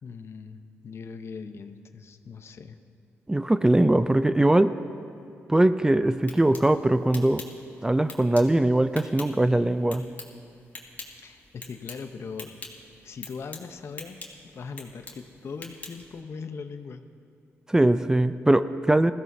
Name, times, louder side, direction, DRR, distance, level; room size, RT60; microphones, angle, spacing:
voice 1, 0.0-2.8 11.2-12.5 13.0-14.2 14.5-17.0, left 5 dB, 60° left, 8 dB, 0.8 m, -40 dB
voice 2, 3.3-4.7 5.5-7.4 7.8-10.1 17.7-19.1, right 1 dB, 15° right, 12 dB, 0.4 m, -21 dB
sound 1, 6.0-16.2, left 3 dB, 35° left, 2.3 m, -46 dB
20.5 x 15.5 x 2.7 m, 2.6 s
cardioid pair, 80°, 5 cm